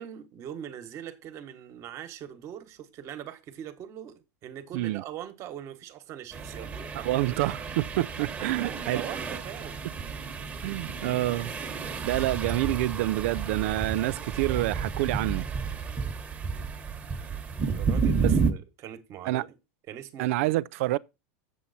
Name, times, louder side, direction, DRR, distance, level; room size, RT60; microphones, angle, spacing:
voice 1, 0.0-6.9 8.4-9.8 17.7-19.5 19.9-20.5, right 10 dB, 40° right, 1.4 m, -42 dB
sound 1, 6.3-18.5, right 5 dB, 20° right, 1.3 m, -31 dB
voice 2, 7.0-9.0 10.6-11.5 12.0-15.5 18.2-18.3 19.3-19.4 20.2-21.0, right 17 dB, 65° right, 0.4 m, -27 dB
7.9 x 7.4 x 4.2 m
supercardioid pair, 125°, 8 cm